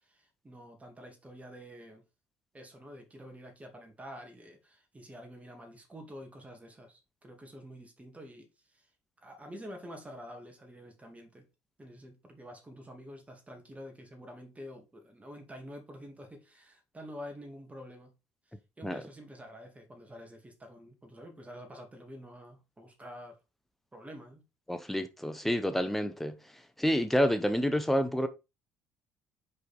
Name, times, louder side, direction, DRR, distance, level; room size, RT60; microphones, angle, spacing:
voice 1, 0.0-2.0 2.5-8.9 9.2-11.5 11.8-18.1 18.8-23.4 23.9-24.4, equal, 20° right, 2.5 m, -48 dB
voice 2, 24.7-26.4 26.8-28.3, equal, 5° left, 0.9 m, -28 dB
5.5 x 4.8 x 4.5 m
hypercardioid pair, 55°, 7 cm